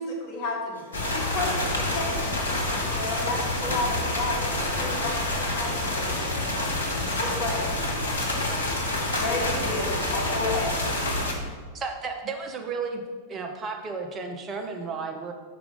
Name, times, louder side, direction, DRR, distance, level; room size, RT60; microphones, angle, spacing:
voice 1, 0.0-0.8 1.1-2.3 2.9-6.3 7.2-7.7 9.2-10.8, left 2 dB, 40° left, -4 dB, 1.5 m, -31 dB
voice 2, 0.7-1.4 6.3-7.1 8.8-10.1, right 1 dB, 75° right, -1 dB, 1.2 m, -45 dB
sound 1, 0.9-11.3, left 2 dB, 75° left, 1.0 m, -28 dB
voice 3, 11.7-13.0 13.3-15.3, right 4 dB, 25° right, 3 dB, 0.8 m, -33 dB
5.1 x 4.8 x 5.1 m, 1.5 s
figure-of-eight pair, 90°, 0 cm